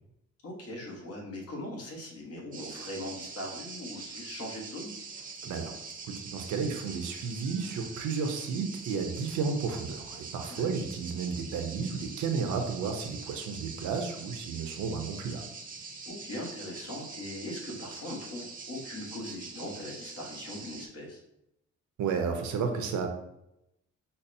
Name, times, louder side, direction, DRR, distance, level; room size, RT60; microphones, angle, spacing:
voice 1, 0.4-4.9 10.5-10.7 16.0-21.2, left 1 dB, 55° left, -2 dB, 1.3 m, -40 dB
sound 1, 2.5-20.9, right 4 dB, 30° right, 0.6 m, -44 dB
voice 2, 5.4-5.7 6.1-15.4 22.0-23.1, right 5 dB, 75° right, 5 dB, 0.7 m, -32 dB
5.3 x 2.0 x 2.7 m, 0.83 s
cardioid pair, 90°, 30 cm